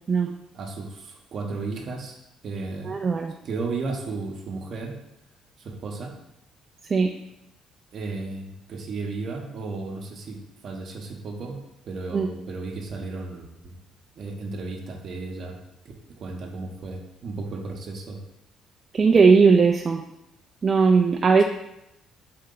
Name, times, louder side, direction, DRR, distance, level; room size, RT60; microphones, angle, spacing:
voice 1, 0.5-2.2 2.4-3.0 3.4-4.9 5.6-6.1 7.9-11.6 11.9-13.8 14.2-15.6 16.2-18.2, right 3 dB, 55° right, 2 dB, 0.8 m, -34 dB
voice 2, 2.8-3.3 6.9-7.1 12.1-12.3 18.9-20.0 20.6-21.4, right 5 dB, 40° right, 3 dB, 0.3 m, -18 dB
4.3 x 2.7 x 3.8 m, 0.86 s
supercardioid pair, 70°, 0 cm